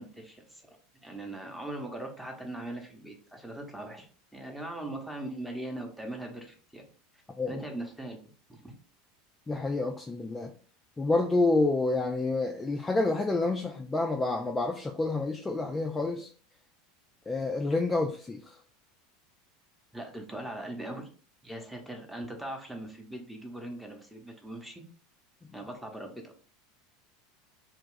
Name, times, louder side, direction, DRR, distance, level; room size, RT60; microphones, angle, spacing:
voice 1, 0.0-6.8 7.5-8.2 8.5-8.7 19.9-21.1 21.4-24.8 25.5-26.3, right 1 dB, 5° right, 2 dB, 0.8 m, -40 dB
voice 2, 9.5-10.5 11.0-16.3 17.3-18.6, left 2 dB, 15° left, 3 dB, 0.3 m, -28 dB
2.8 x 2.3 x 3.8 m, 0.41 s
figure-of-eight pair, 75°, 0 cm